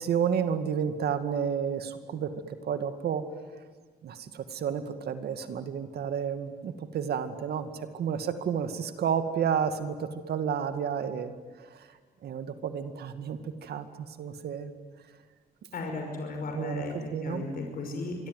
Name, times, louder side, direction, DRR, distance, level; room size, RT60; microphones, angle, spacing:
voice 1, 0.0-3.2 4.0-11.9 12.2-14.7 16.5-17.5, right 7 dB, 85° right, 9 dB, 2.2 m, -31 dB
voice 2, 15.7-16.9 17.2-18.3, left 3 dB, 65° left, 2 dB, 5.7 m, -35 dB
26.5 x 23.5 x 9.5 m, 1.5 s
wide cardioid pair, 150°, 16 cm